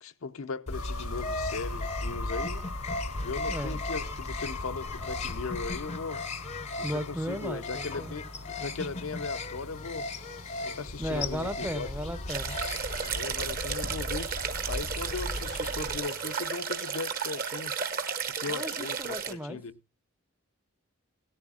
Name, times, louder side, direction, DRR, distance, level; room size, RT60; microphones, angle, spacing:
voice 1, 0.0-2.7 3.2-6.2 6.8-8.3 8.6-10.1 10.6-11.9 13.1-14.3 14.7-17.7 18.4-19.7, left 4 dB, 70° left, 0.6 m, -38 dB
sound 1, 0.7-16.4, left 3 dB, 90° left, 2.0 m, -44 dB
sound 2, 0.7-16.0, left 2 dB, 30° left, 0.6 m, -36 dB
voice 2, 3.5-3.8 6.8-8.1 11.0-12.6 18.5-19.6, equal, 10° right, 0.6 m, -35 dB
sound 3, 12.3-19.3, right 6 dB, 40° right, 0.9 m, -33 dB
17.0 x 11.0 x 2.4 m
head